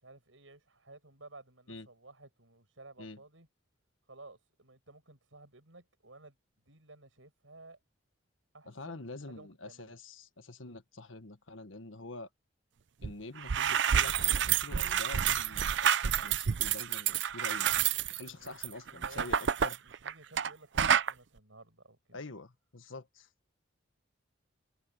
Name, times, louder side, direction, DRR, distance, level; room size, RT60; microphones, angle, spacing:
voice 1, 0.0-3.5 4.1-6.4 6.7-7.8 8.5-9.9 18.3-18.6 18.9-19.4 19.8-22.2, right 2 dB, 80° right, 6.9 m, -55 dB
voice 2, 8.7-12.3 13.0-17.7 18.1-19.8 22.1-23.3, left 2 dB, 80° left, 1.5 m, -46 dB
sound 1, 13.0-13.1 13.4-20.5 20.8-21.1, right 9 dB, 65° right, 0.5 m, -29 dB
head